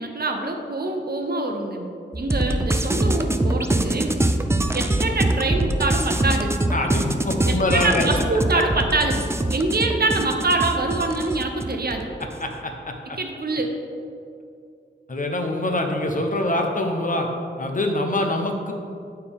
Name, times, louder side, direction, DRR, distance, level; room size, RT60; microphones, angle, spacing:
voice 1, 0.0-1.9 2.1-4.1 4.7-6.6 7.5-12.1 13.2-13.8, right 2 dB, 55° right, 3 dB, 0.8 m, -25 dB
sound 1, 2.1-12.4, right 1 dB, 15° right, 0.4 m, -24 dB
voice 2, 6.7-8.0 8.5-8.6 12.4-13.2 15.1-17.3 17.6-18.7, left 1 dB, 45° left, 2 dB, 0.8 m, -24 dB
8.9 x 4.6 x 3.5 m, 2.4 s
wide cardioid pair, 65°, 19 cm